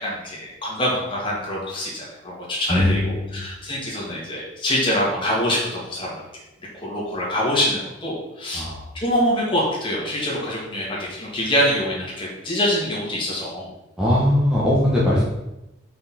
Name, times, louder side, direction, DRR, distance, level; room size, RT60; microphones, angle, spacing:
voice 1, 0.0-6.1 6.7-8.6 8.9-13.7, equal, 25° left, -5 dB, 2.1 m, -25 dB
voice 2, 2.7-3.4 8.5-8.9 14.0-15.3, left 1 dB, 5° right, -7 dB, 1.1 m, -20 dB
5.6 x 5.3 x 4.2 m, 0.92 s
head